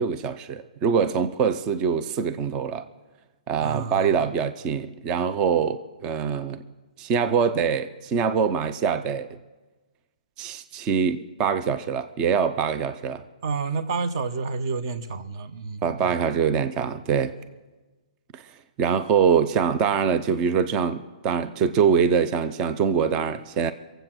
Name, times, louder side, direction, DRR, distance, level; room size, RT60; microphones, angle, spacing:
voice 1, 0.0-2.9 3.5-6.6 7.0-9.3 10.4-13.2 15.8-17.4 18.3-18.4 18.8-23.7, right 6 dB, 15° right, 12 dB, 0.4 m, -24 dB
voice 2, 3.6-4.2 13.4-16.1, right 4 dB, 35° right, 11 dB, 0.8 m, -29 dB
23.0 x 7.9 x 6.0 m, 1.2 s
hypercardioid pair, 170°, 4 cm